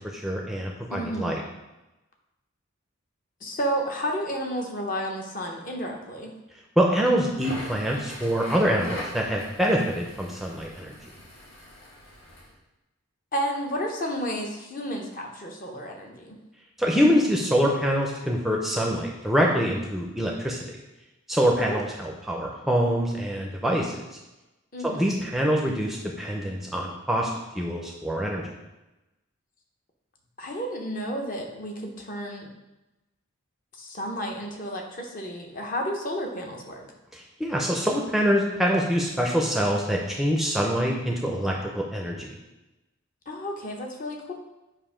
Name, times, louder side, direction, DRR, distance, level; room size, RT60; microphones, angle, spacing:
voice 1, 0.1-1.4 6.8-11.0 16.8-20.6 21.3-24.0 24.8-28.5 37.1-42.3, equal, ahead, -1 dB, 0.5 m, -25 dB
voice 2, 0.9-1.3 3.4-6.3 13.3-16.4 21.7-21.8 24.7-25.1 30.4-32.5 33.7-36.9 43.3-44.3, equal, 40° left, 1 dB, 0.8 m, -31 dB
Crackle, 7.3-12.5, left 1 dB, 65° left, 1.9 m, -41 dB
7.5 x 2.6 x 4.9 m, 1.0 s
head